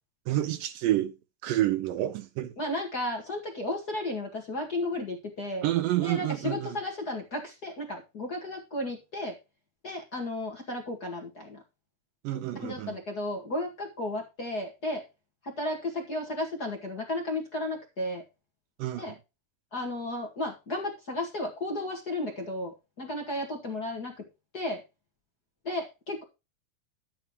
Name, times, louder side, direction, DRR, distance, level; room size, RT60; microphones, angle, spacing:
voice 1, 0.3-1.2 1.4-2.5 5.6-6.8 12.2-12.9 18.8-19.2, right 14 dB, 75° right, 2.1 m, -29 dB
voice 2, 2.6-5.7 6.0-9.3 9.8-11.6 12.6-15.0 15.4-18.2 18.9-19.1 19.7-24.1 24.5-24.8 25.6-26.2, left 1 dB, 35° left, 1.7 m, -33 dB
11.5 x 9.1 x 3.0 m
omnidirectional pair, 4.3 m